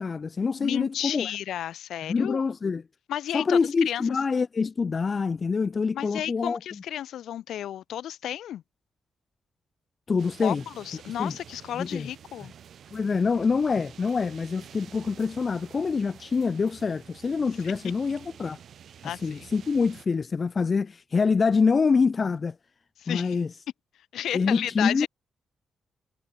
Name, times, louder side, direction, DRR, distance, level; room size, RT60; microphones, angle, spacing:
voice 1, 0.0-1.3 2.1-2.8 3.3-6.6 10.1-10.6 11.2-11.3 11.8-12.1 12.9-18.6 19.2-22.5 23.1-23.5 24.3-25.1, left 5 dB, 30° left, 0.3 m, -25 dB
voice 2, 0.6-2.4 3.1-3.6 3.8-4.0 5.9-8.6 10.4-12.5 17.6-17.7 19.0-19.5 23.0-23.4 24.1-25.1, left 11 dB, 80° left, 1.1 m, -32 dB
sound 1, 10.2-20.1, right 8 dB, 60° right, 1.7 m, -49 dB
cardioid pair, 145°, 0 cm